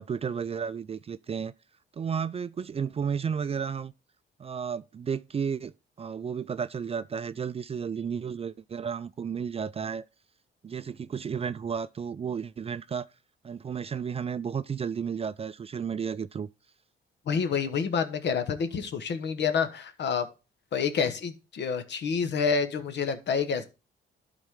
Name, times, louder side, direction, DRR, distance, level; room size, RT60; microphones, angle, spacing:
voice 1, 0.0-1.5 1.9-3.9 4.4-10.1 10.6-13.1 13.4-16.5 18.8-18.9, right 7 dB, 30° right, 0.4 m, -33 dB
voice 2, 17.3-20.3 20.7-23.6, left 6 dB, 60° left, 1.2 m, -28 dB
12.0 x 4.2 x 3.6 m
cardioid pair, 90°, 20 cm